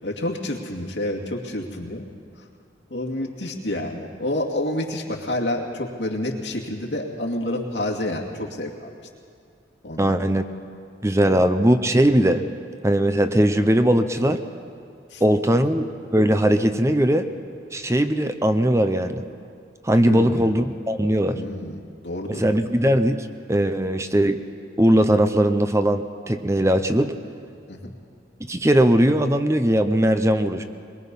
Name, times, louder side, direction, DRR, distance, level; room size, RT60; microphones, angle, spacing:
voice 1, 0.0-2.1 2.4-2.5 2.9-8.9 9.8-10.2 11.2-11.4 15.1-15.2 15.6-15.7 20.0-20.5 21.3-22.4 27.7-27.9, left 1 dB, 90° left, 0 dB, 2.5 m, -29 dB
voice 2, 10.0-10.4 11.0-12.4 12.8-14.4 15.2-15.9 16.1-17.3 17.7-19.2 19.8-21.4 22.4-24.4 24.8-27.1 28.4-30.6, right 1 dB, 15° right, 9 dB, 0.7 m, -19 dB
22.5 x 21.5 x 5.5 m, 2.4 s
head